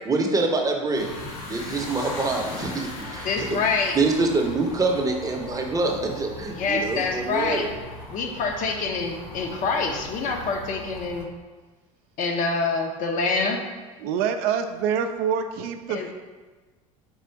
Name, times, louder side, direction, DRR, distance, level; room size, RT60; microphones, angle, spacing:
voice 1, 0.1-3.6 3.9-7.7, right 3 dB, 20° right, 2 dB, 0.7 m, -25 dB
sound 1, 0.9-11.2, left 1 dB, 85° left, 0.9 m, -39 dB
voice 2, 3.2-4.0 6.5-7.7 8.1-11.3 12.2-13.6 15.9-16.1, left 4 dB, 50° left, 3 dB, 0.7 m, -26 dB
voice 3, 14.0-16.1, right 7 dB, 65° right, 7 dB, 0.4 m, -26 dB
4.5 x 2.5 x 4.4 m, 1.3 s
hypercardioid pair, 90°, 17 cm